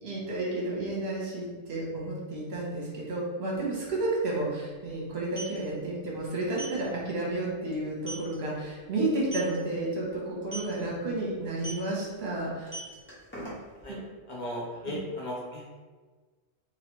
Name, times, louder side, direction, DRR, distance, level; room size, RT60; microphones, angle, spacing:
voice 1, 0.0-12.8 13.9-14.0 14.9-15.0, right 2 dB, 55° right, -4 dB, 1.2 m, -31 dB
sound 1, 3.5-3.6 3.9-4.1 5.1-5.6 6.5-6.8 7.2-7.4 7.7-7.8 8.1-8.3 9.2-9.6 10.4-10.7 11.6-11.9 12.5-13.8, right 1 dB, 10° left, 0.8 m, -38 dB
voice 2, 14.3-15.8, equal, 60° left, -4 dB, 0.5 m, -36 dB
3.1 x 2.8 x 3.0 m, 1.4 s
omnidirectional pair, 1.4 m